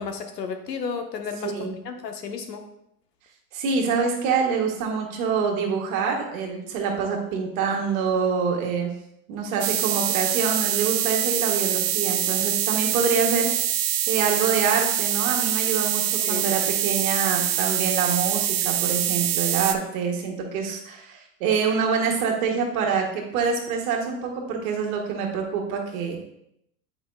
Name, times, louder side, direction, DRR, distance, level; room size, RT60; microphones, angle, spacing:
voice 1, 0.0-2.6 9.8-9.9 16.2-16.5, left 5 dB, 90° left, 5 dB, 0.9 m, -33 dB
voice 2, 1.4-1.7 3.5-8.9 9.3-13.5 14.1-26.2, right 5 dB, 60° right, 1 dB, 1.6 m, -26 dB
sound 1, 9.6-19.8, right 11 dB, 40° right, 0.5 m, -24 dB
8.1 x 5.1 x 2.3 m, 0.79 s
hypercardioid pair, 100°, 48 cm